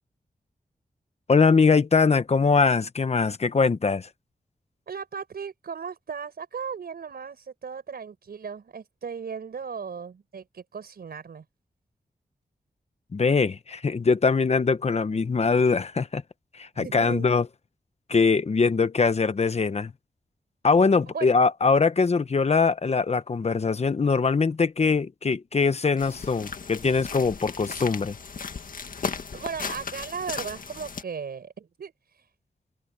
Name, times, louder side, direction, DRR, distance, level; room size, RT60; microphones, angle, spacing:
voice 1, 1.3-4.1 13.1-16.2 16.5-17.5 18.1-19.9 20.6-28.2, left 4 dB, 45° left, 1.0 m, -22 dB
voice 2, 4.9-11.4 16.8-17.3 21.0-21.3 29.3-32.2, right 6 dB, 85° right, 6.0 m, -36 dB
sound 1, 26.0-31.0, left 5 dB, 65° left, 1.8 m, -36 dB
open air
wide cardioid pair, 120°, 16 cm